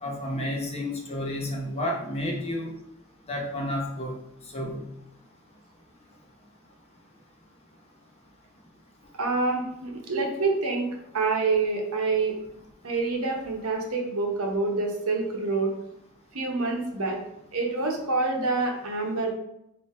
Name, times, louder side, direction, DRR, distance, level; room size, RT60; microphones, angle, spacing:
voice 1, 0.0-2.7 3.3-4.1 4.5-4.8, left 1 dB, 30° left, 0 dB, 0.7 m, -31 dB
voice 2, 9.2-10.8 11.1-12.4 12.8-15.7 16.3-17.2 17.5-19.3, right 3 dB, 75° right, 1 dB, 0.9 m, -27 dB
3.6 x 2.8 x 4.2 m, 0.82 s
head